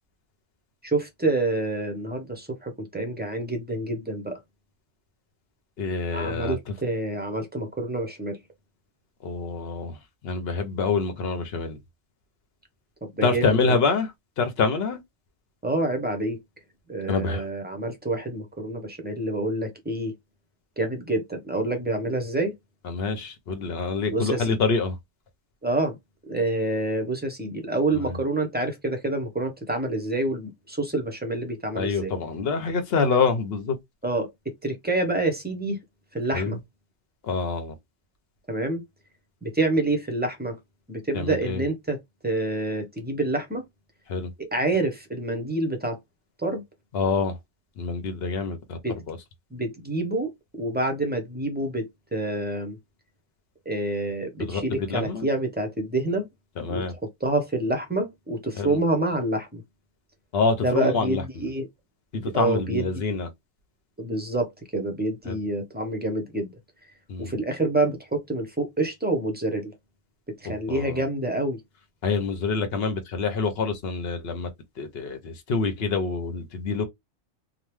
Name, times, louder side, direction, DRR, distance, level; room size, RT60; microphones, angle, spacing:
voice 1, 0.8-4.4 6.1-8.4 13.0-13.8 15.6-16.4 16.9-20.1 20.8-22.5 24.1-24.6 25.6-26.0 26.3-32.1 34.0-35.8 36.1-36.6 38.5-38.8 39.4-40.6 40.9-43.6 44.4-46.0 46.4-46.6 48.8-49.0 49.5-50.3 50.6-52.8 53.7-56.3 56.7-59.6 60.6-61.7 62.1-62.9 64.0-66.5 67.2-69.7 70.4-71.6, right 2 dB, 10° right, 0.5 m, -27 dB
voice 2, 5.8-6.7 9.2-10.0 10.2-11.8 13.2-14.1 14.4-15.0 17.1-17.5 22.8-25.0 27.9-28.2 31.7-33.8 36.3-36.6 37.2-37.7 41.1-41.6 44.1-44.3 46.9-47.4 47.8-48.8 49.1-49.2 54.4-55.3 56.6-56.9 58.6-58.8 60.3-61.5 62.1-63.3 65.3-65.4 67.1-67.4 70.5-71.0 72.0-74.5 74.8-76.8, left 4 dB, 65° left, 0.9 m, -26 dB
3.0 x 2.0 x 3.2 m
omnidirectional pair, 1.2 m